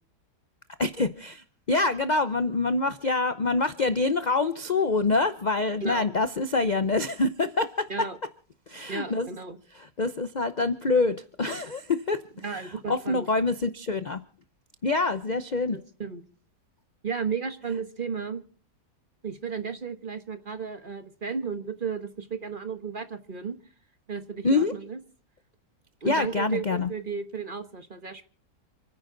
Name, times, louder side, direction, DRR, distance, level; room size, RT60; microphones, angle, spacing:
voice 1, 0.8-8.1 8.7-9.3 9.8-12.2 12.5-14.2 14.8-15.8 24.4-24.7 26.0-26.9, left 3 dB, 45° left, 11 dB, 0.6 m, -26 dB
voice 2, 8.9-9.6 12.4-13.3 15.7-16.2 17.0-18.4 19.2-23.5 24.1-25.0 26.0-28.3, right 5 dB, 35° right, 9 dB, 1.3 m, -34 dB
29.0 x 9.8 x 3.9 m, 0.44 s
omnidirectional pair, 1.8 m